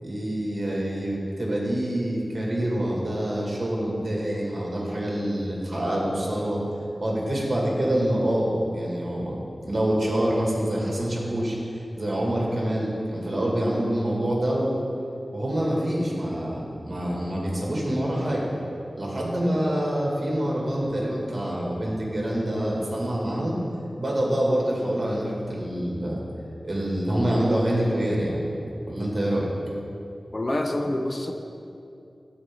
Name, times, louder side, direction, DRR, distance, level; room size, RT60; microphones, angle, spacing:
voice 1, 0.0-6.6 7.0-9.4 9.7-14.8 15.3-18.5 18.9-23.6 24.0-26.2 26.6-28.4 28.9-29.5, right 1 dB, 50° right, -3 dB, 2.1 m, -26 dB
voice 2, 30.3-31.3, left 1 dB, 40° left, 5 dB, 0.6 m, -26 dB
14.0 x 4.7 x 3.7 m, 2.6 s
wide cardioid pair, 55°, 0 cm